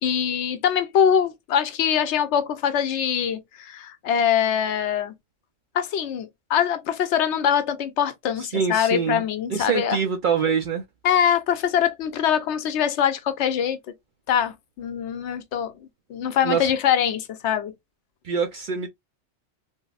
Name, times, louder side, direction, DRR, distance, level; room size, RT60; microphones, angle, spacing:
voice 1, 0.0-5.1 5.7-10.0 11.0-13.8 14.3-15.7 16.1-17.7, left 8 dB, 75° left, 0.9 m, -23 dB
voice 2, 8.5-9.2 9.5-10.8 16.4-16.7 18.2-18.9, right 6 dB, 60° right, 0.5 m, -24 dB
3.4 x 2.0 x 2.3 m
omnidirectional pair, 1.2 m